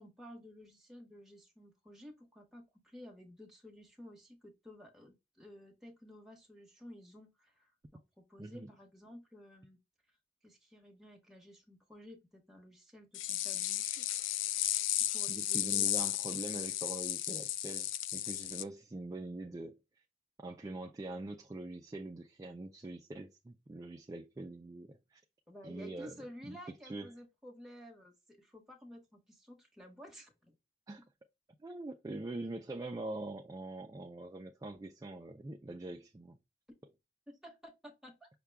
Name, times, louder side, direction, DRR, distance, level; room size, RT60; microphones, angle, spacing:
voice 1, 0.0-8.0 8.3-9.8 10.4-14.1 15.1-15.9 25.5-30.5 37.3-38.3, left 1 dB, ahead, 1.1 m, -53 dB
voice 2, 8.4-8.7 15.3-19.8 20.4-25.2 25.6-26.1 26.4-26.6 26.8-27.1 30.9-31.0 31.6-36.4, right 2 dB, 20° right, 0.3 m, -43 dB
sound 1, 13.1-18.6, left 13 dB, 80° left, 0.3 m, -34 dB
5.7 x 2.2 x 3.4 m
head